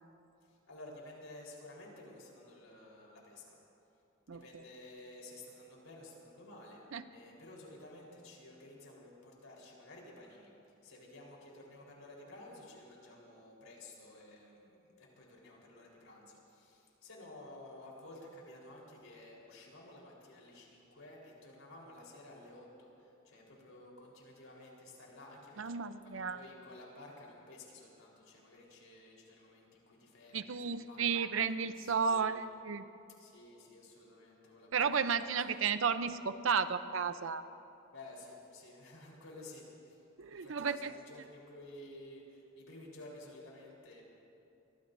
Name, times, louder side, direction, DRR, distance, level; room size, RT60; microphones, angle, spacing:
voice 1, 0.4-3.6 4.3-10.5 10.8-25.8 26.0-31.4 31.8-32.4 33.2-35.3 37.9-40.0 40.3-44.0, left 1 dB, 85° left, -3 dB, 4.2 m, -53 dB
voice 2, 25.6-26.4 30.3-32.8 34.7-37.4 40.2-40.9, right 6 dB, 70° right, 11 dB, 0.6 m, -33 dB
25.0 x 21.0 x 2.7 m, 2.7 s
head